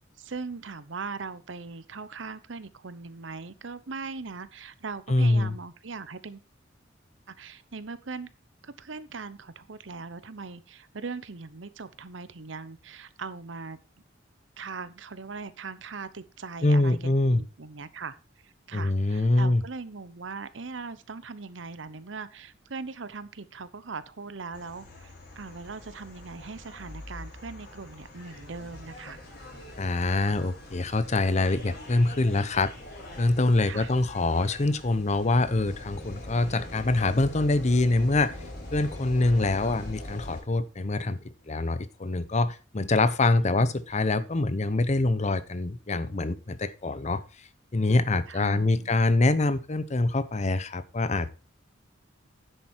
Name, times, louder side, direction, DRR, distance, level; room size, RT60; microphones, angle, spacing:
voice 1, 0.2-6.4 7.4-8.3 8.6-13.8 14.6-18.2 18.4-29.2 33.6-33.9 48.3-49.0, right 4 dB, 80° right, 15 dB, 0.9 m, -40 dB
voice 2, 5.1-5.6 16.6-17.4 18.7-19.6 29.8-32.7 33.2-38.4 38.7-41.2 41.5-47.2 47.7-51.3, left 2 dB, 40° left, 15 dB, 0.7 m, -25 dB
sound 1, 24.5-40.4, left 1 dB, 60° left, 5.1 m, -43 dB
10.0 x 7.6 x 4.4 m, 0.32 s
head